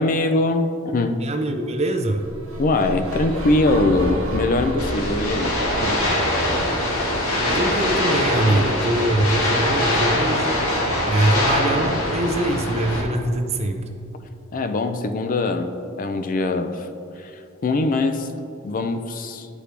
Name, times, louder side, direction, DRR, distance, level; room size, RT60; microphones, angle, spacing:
voice 1, 0.0-1.2 2.6-6.0 11.2-11.4 14.5-16.9 17.2-18.3 18.6-19.5, left 2 dB, 40° left, 8 dB, 0.4 m, -22 dB
voice 2, 1.2-2.2 7.4-10.6 11.1-13.8, right 1 dB, 30° right, 5 dB, 0.6 m, -23 dB
sound 1, 2.1-8.3, equal, 75° right, 1.5 m, -31 dB
sound 2, 4.8-13.0, left 1 dB, 90° left, 1.4 m, -22 dB
11.5 x 4.9 x 3.3 m, 2.5 s
head